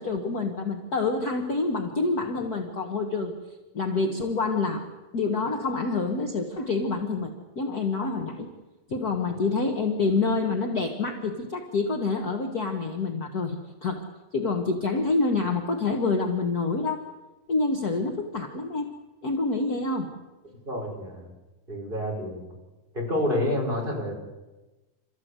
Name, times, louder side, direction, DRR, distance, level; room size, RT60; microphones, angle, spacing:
voice 1, 0.0-3.3 3.7-4.9 5.1-8.5 8.9-14.1 14.3-17.0 17.5-18.9 19.2-20.1, left 3 dB, 50° left, 3 dB, 1.1 m, -27 dB
voice 2, 20.6-21.3 21.7-22.4 22.9-24.2, left 1 dB, 15° right, -1 dB, 5.0 m, -28 dB
29.5 x 14.0 x 8.2 m, 1.1 s
omnidirectional pair, 3.9 m